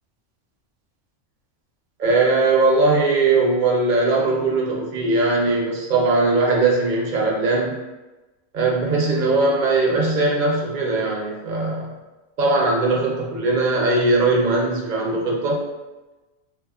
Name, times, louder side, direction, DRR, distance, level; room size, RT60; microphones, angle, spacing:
voice 1, 2.0-7.7 8.5-11.9 12.4-15.6, right 3 dB, 50° right, -2 dB, 0.6 m, -20 dB
2.8 x 2.6 x 2.3 m, 1.1 s
omnidirectional pair, 1.3 m